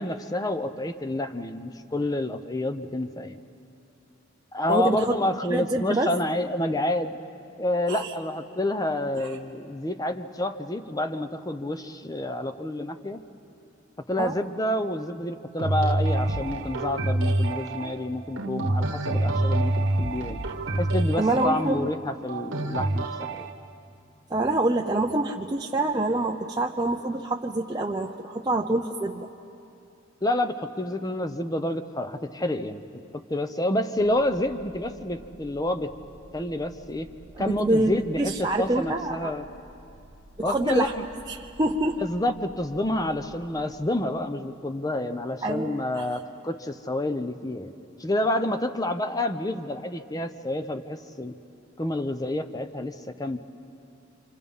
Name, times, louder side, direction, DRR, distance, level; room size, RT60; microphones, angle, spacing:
voice 1, 0.0-3.4 4.5-7.2 7.6-13.2 14.1-20.4 20.8-23.5 30.2-35.9 36.3-37.1 37.4-39.5 40.4-41.0 42.0-47.7 48.0-51.4 51.8-53.4, left 1 dB, 20° left, 9 dB, 0.7 m, -29 dB
voice 2, 4.7-5.2 5.5-6.1 7.9-8.1 9.1-9.4 14.2-14.3 21.2-21.9 24.3-29.3 37.4-39.3 40.4-40.9 41.3-42.0 45.4-46.0, right 2 dB, 20° right, 0 dB, 0.6 m, -26 dB
sound 1, 15.6-23.5, right 1 dB, 80° right, 1.2 m, -27 dB
sound 2, 34.0-43.3, right 1 dB, 85° left, 6.2 m, -51 dB
28.5 x 26.5 x 5.5 m, 2.6 s
head